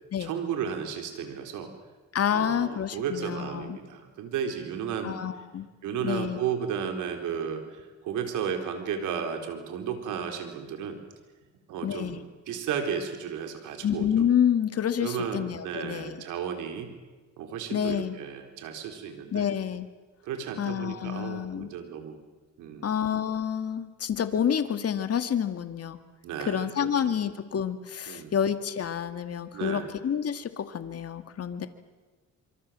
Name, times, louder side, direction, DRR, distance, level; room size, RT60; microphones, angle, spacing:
voice 1, 0.2-1.7 2.3-5.2 5.8-11.0 11.7-14.1 15.0-16.9 17.4-19.5 20.2-22.2 22.6-22.9 26.2-27.2 28.1-28.3 29.5-29.9, right 7 dB, 90° right, 6 dB, 4.2 m, -34 dB
voice 2, 2.1-3.8 5.0-5.7 6.0-6.4 11.8-12.2 13.8-16.2 17.7-18.2 19.3-19.9 20.6-21.7 22.8-26.0 26.4-31.7, left 8 dB, 55° left, 9 dB, 2.1 m, -28 dB
26.0 x 25.0 x 7.6 m, 1.3 s
cardioid pair, 90°, 30 cm